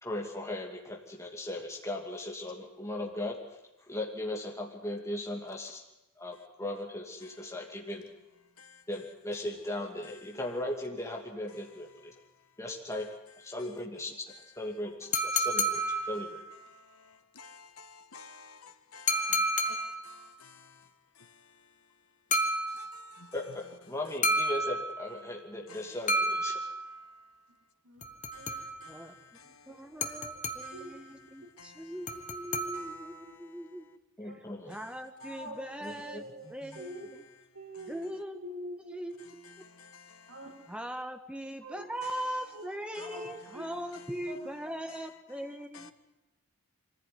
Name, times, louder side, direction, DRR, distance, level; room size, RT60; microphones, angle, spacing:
voice 1, 0.0-3.4 3.8-5.8 6.2-8.1 8.9-12.1 12.6-13.1 13.4-14.2 14.6-16.4 19.7-19.8 23.3-26.6 34.2-34.8 35.8-36.8, left 1 dB, 15° left, 2.6 m, -38 dB
sound 1, 15.1-16.6 19.1-20.2 22.3-23.2 24.2-25.3 26.1-27.1 28.0-29.0 30.0-30.9 32.1-33.2, equal, 35° left, 1.5 m, -31 dB
voice 2, 16.7-20.9 21.2-21.5 22.7-23.3 25.7-26.0 28.3-30.0 30.6-32.0 32.7-33.6 34.7-34.9 36.7-37.0 37.7-37.9 39.4-40.4 42.0-42.4 42.9-43.4 43.9-44.0 45.7-45.9, left 5 dB, 75° left, 1.5 m, -53 dB
voice 3, 28.9-33.9 34.2-34.3 34.7-37.3 37.9-38.4 38.9-39.4 40.7-45.9, equal, 5° right, 1.3 m, -40 dB
voice 4, 30.1-30.4 30.7-31.0 33.2-33.4 34.3-34.4 34.7-34.8 35.2-35.6 36.1-37.1 37.5-38.1 38.4-39.6 40.3-40.5 41.6-41.9 42.5-42.6 43.0-43.2 43.5-43.7 44.3-44.5, equal, 90° right, 4.5 m, -45 dB
23.0 x 15.0 x 9.6 m
head